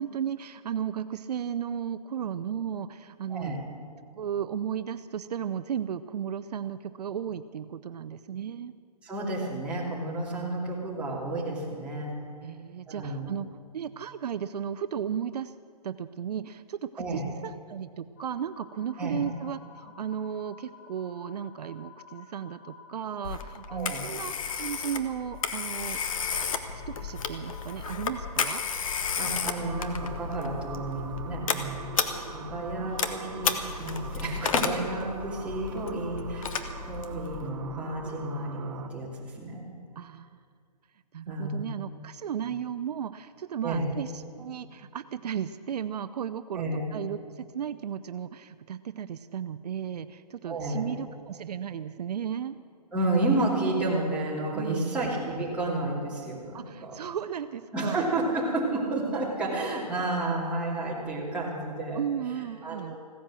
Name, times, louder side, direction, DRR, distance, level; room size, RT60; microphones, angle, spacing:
voice 1, 0.0-3.6 4.1-8.7 12.4-13.5 13.7-15.5 15.8-26.0 26.7-28.6 40.0-40.4 41.1-52.6 54.5-55.1 56.5-58.1 61.9-63.0, right 8 dB, 75° right, 12 dB, 0.6 m, -35 dB
voice 2, 9.0-12.1 12.9-13.3 17.0-17.3 19.0-19.2 23.7-24.1 29.2-31.9 32.3-33.5 33.8-36.6 36.9-39.6 41.3-41.6 43.6-43.9 46.5-46.8 50.4-50.9 52.9-57.0 57.7-62.0 62.6-63.0, right 2 dB, 5° right, -7 dB, 2.6 m, -31 dB
sound 1, 18.2-28.3, left 6 dB, 30° left, 1.5 m, -51 dB
Telephone, 23.2-37.5, left 6 dB, 55° left, 1.2 m, -33 dB
sound 2, 29.6-38.9, right 7 dB, 50° right, 1.0 m, -43 dB
16.0 x 10.5 x 7.5 m, 2.1 s
hypercardioid pair, 165°, 21 cm